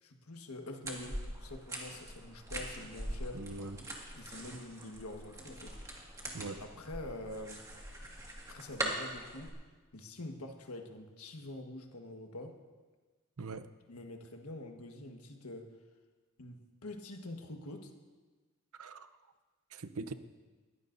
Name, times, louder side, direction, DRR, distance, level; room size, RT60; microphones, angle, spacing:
voice 1, 0.0-3.4 4.1-5.8 6.6-7.7 8.5-9.5 9.9-12.6 13.9-15.7 16.4-17.9, left 2 dB, 85° left, 4 dB, 1.5 m, -46 dB
sound 1, 0.8-9.5, right 1 dB, 15° right, 1.9 m, -42 dB
voice 2, 3.3-3.9 6.3-6.6 13.4-13.7 18.8-19.1 19.7-20.1, right 3 dB, 80° right, 11 dB, 0.7 m, -42 dB
21.5 x 15.5 x 2.7 m, 1.3 s
head